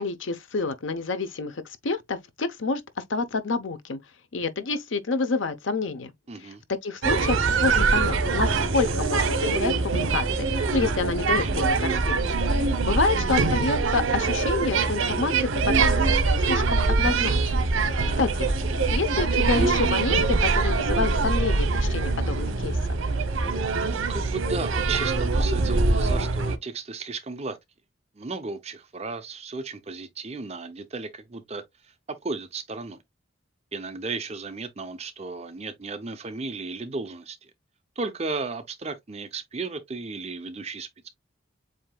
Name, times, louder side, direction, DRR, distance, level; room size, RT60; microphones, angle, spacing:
voice 1, 0.0-2.8 3.1-4.0 4.3-6.1 6.4-6.5 6.8-10.3 10.5-15.3 15.7-17.7 18.2-18.5 18.9-22.8, left 3 dB, 75° left, 0.8 m, -28 dB
voice 2, 6.3-6.6 17.8-18.3 23.7-27.6 28.2-33.0 33.7-37.5 38.0-41.1, right 3 dB, 30° right, 0.6 m, -35 dB
sound 1, 7.0-26.6, right 3 dB, 90° right, 0.8 m, -23 dB
7.6 x 2.8 x 2.3 m
head